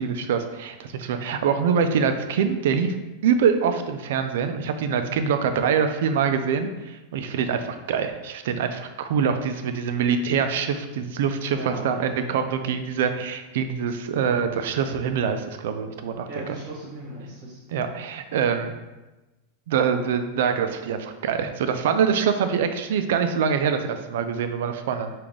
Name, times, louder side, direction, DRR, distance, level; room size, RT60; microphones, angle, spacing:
voice 1, 0.0-2.9 3.2-16.6 17.7-18.7 19.7-25.1, right 6 dB, 70° right, 8 dB, 0.4 m, -24 dB
voice 2, 11.4-12.4 16.3-17.6, right 2 dB, 45° right, -4 dB, 1.1 m, -37 dB
5.0 x 2.5 x 3.6 m, 1.1 s
supercardioid pair, 150°, 0 cm